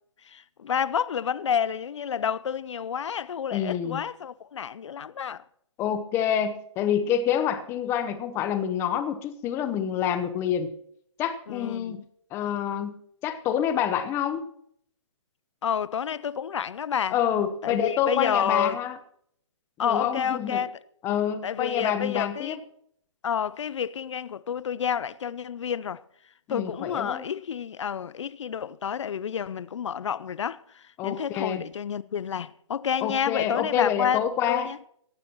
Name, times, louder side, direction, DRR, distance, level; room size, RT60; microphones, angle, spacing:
voice 1, 0.3-5.4 11.5-12.0 15.6-17.2 17.6-18.8 19.8-20.8 21.4-22.6 23.2-26.0 26.5-34.8, left 8 dB, 70° left, 0.6 m, -29 dB
voice 2, 3.5-4.0 5.8-10.7 11.2-12.0 12.3-13.0 13.2-14.4 17.1-19.0 19.8-20.6 21.0-22.6 26.5-27.2 31.0-31.6 33.0-34.7, left 9 dB, 15° left, 0.8 m, -27 dB
18.0 x 16.0 x 3.0 m
hypercardioid pair, 155°, 16 cm